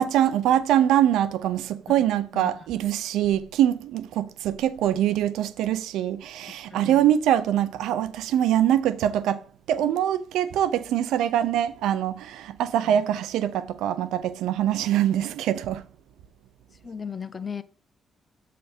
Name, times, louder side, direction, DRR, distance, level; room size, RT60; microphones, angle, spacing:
voice 1, 0.0-9.4 9.7-15.8, right 11 dB, 90° right, 0.5 m, -23 dB
voice 2, 2.3-2.7 6.7-7.1 12.8-13.2 16.8-17.6, left 6 dB, 35° left, 0.5 m, -37 dB
7.5 x 3.4 x 4.4 m
cardioid pair, 75°, 0 cm